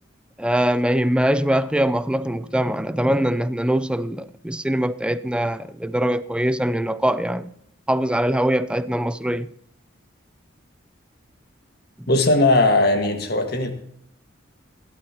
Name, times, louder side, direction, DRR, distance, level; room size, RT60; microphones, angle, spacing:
voice 1, 0.4-7.5 7.9-9.5 12.0-12.1, right 1 dB, 5° right, 0.4 m, -22 dB
voice 2, 12.1-13.7, left 2 dB, 50° left, 1.8 m, -18 dB
16.5 x 12.0 x 3.0 m
head